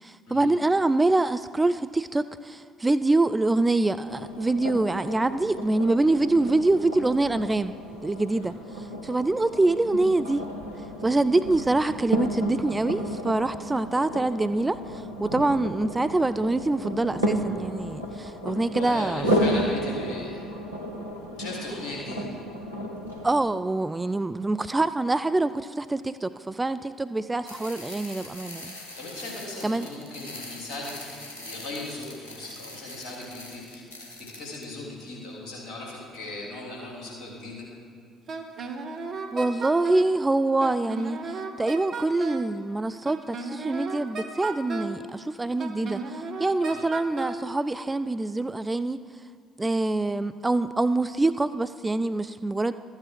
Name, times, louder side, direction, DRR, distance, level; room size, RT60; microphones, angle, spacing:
voice 1, 0.0-7.7 8.0-10.4 11.0-19.3 23.2-28.7 29.6-29.9 39.3-49.0 49.6-52.7, right 2 dB, 15° right, 12 dB, 0.3 m, -25 dB
sound 1, 4.0-23.3, equal, 90° right, 0.8 m, -32 dB
voice 2, 18.8-20.4 21.4-22.3 29.0-31.2 31.4-33.8 34.4-37.6 46.5-46.9, left 2 dB, 55° left, -3 dB, 3.1 m, -38 dB
sound 2, 27.5-34.6, left 2 dB, 80° left, 1.2 m, -43 dB
Wind instrument woodwind instrument, 38.3-40.1 40.6-42.5 43.0-45.0 45.6-47.4, right 4 dB, 45° right, 1.0 m, -34 dB
13.0 x 8.6 x 4.6 m, 2.4 s
figure-of-eight pair, 50°, 0 cm